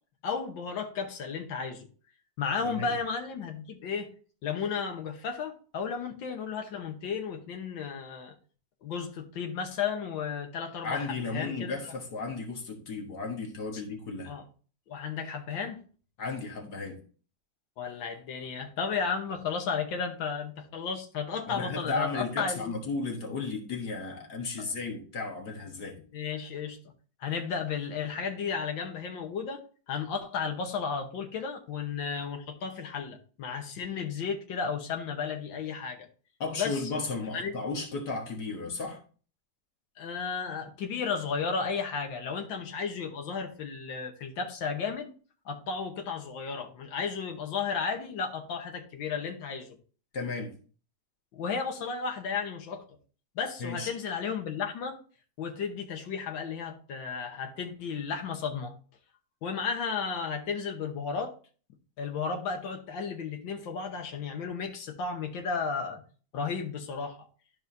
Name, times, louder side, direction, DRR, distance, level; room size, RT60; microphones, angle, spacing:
voice 1, 0.2-1.9 2.4-4.1 4.4-8.3 8.8-11.9 13.7-13.8 14.3-14.4 14.9-15.8 17.8-22.7 26.1-26.8 27.2-29.6 29.9-36.1 36.6-36.8 37.3-37.5 40.0-45.1 45.4-49.8 51.3-52.8 53.3-55.0 55.4-58.7 59.4-61.3 62.0-66.0 66.3-67.3, left 5 dB, 90° left, 1.8 m, -33 dB
voice 2, 2.6-3.0 10.8-14.3 16.2-17.0 21.5-26.0 36.4-39.0 50.1-50.5 53.6-53.9, left 3 dB, 60° left, 1.9 m, -34 dB
12.5 x 4.7 x 2.7 m
omnidirectional pair, 2.0 m